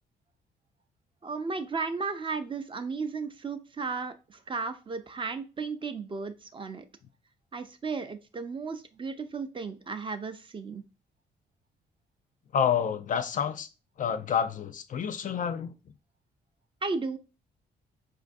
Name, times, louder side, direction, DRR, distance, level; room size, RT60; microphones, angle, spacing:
voice 1, 1.2-6.8 7.5-10.8 16.8-17.2, right 4 dB, 30° right, 0.4 m, -34 dB
voice 2, 12.5-13.7 14.0-15.7, left 8 dB, 50° left, 0.4 m, -28 dB
4.6 x 2.5 x 2.5 m
cardioid pair, 95°, 18 cm